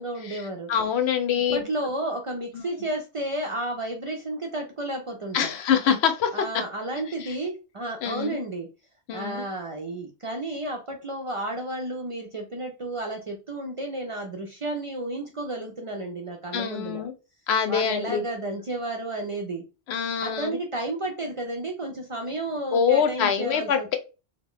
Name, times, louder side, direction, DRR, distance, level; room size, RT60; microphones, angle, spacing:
voice 1, 0.0-0.7 1.5-5.5 6.3-8.7 9.1-17.0 17.7-19.6 20.2-24.0, right 1 dB, 55° right, 2 dB, 0.3 m, -32 dB
voice 2, 0.7-1.6 5.3-6.6 7.2-7.3 8.0-8.4 9.1-9.5 16.5-17.1 17.5-18.2 19.9-20.6 22.7-24.0, left 7 dB, 70° left, 7 dB, 0.8 m, -25 dB
2.3 x 2.1 x 3.6 m, 0.30 s
omnidirectional pair, 1.2 m